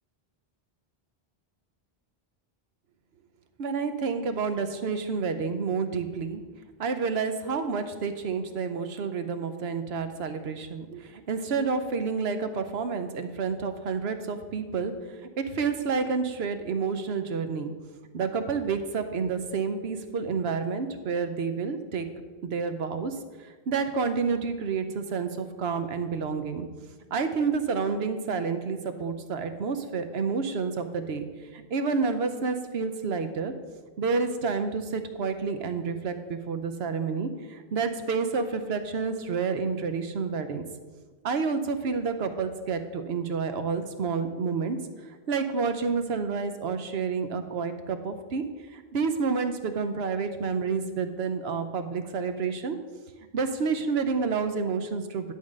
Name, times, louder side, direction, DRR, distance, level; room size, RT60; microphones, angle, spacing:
voice 1, 3.6-6.4 6.8-17.7 18.1-22.1 22.4-23.2 23.7-26.7 27.1-31.3 31.5-33.5 34.0-40.6 41.2-44.8 45.3-48.4 48.7-52.8 53.3-55.3, right 5 dB, 85° right, 8 dB, 1.0 m, -29 dB
10.5 x 3.7 x 6.4 m, 1.4 s
omnidirectional pair, 1.0 m